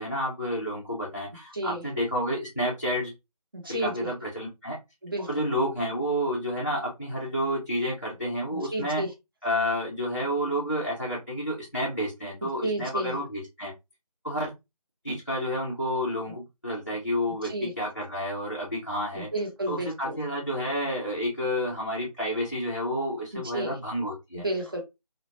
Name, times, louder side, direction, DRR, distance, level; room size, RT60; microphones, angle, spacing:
voice 1, 0.0-3.1 3.6-4.8 5.2-9.0 9.4-13.7 14.2-14.5 15.0-19.3 19.7-24.4, equal, 25° left, -5 dB, 0.4 m, -30 dB
voice 2, 3.5-4.1 5.0-5.3 8.5-9.1 12.6-13.2 17.5-17.7 19.1-20.2 23.3-23.8 24.3-24.8, right 1 dB, 35° right, 0 dB, 0.7 m, -31 dB
2.3 x 2.0 x 2.7 m, 0.22 s
figure-of-eight pair, 175°, 20 cm